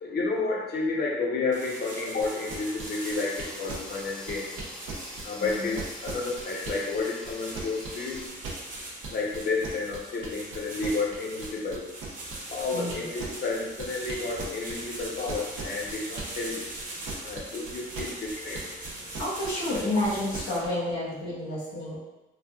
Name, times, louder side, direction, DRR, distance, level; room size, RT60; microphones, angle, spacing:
voice 1, 0.0-4.5 5.2-8.2 9.1-11.9 12.5-16.7 17.2-19.2, left 3 dB, 50° left, -2 dB, 0.8 m, -31 dB
sound 1, 1.5-20.6, right 1 dB, 40° right, 0.9 m, -42 dB
sound 2, 2.2-7.0 7.3-16.5 16.8-20.7, right 4 dB, 85° right, 0.7 m, -38 dB
sound 3, 2.8-8.3, equal, 5° left, 0.7 m, -44 dB
voice 2, 5.4-5.8 12.7-13.0 19.2-22.0, left 1 dB, 85° left, -7 dB, 0.8 m, -30 dB
3.4 x 2.4 x 2.3 m, 1.0 s
cardioid pair, 90°, 20 cm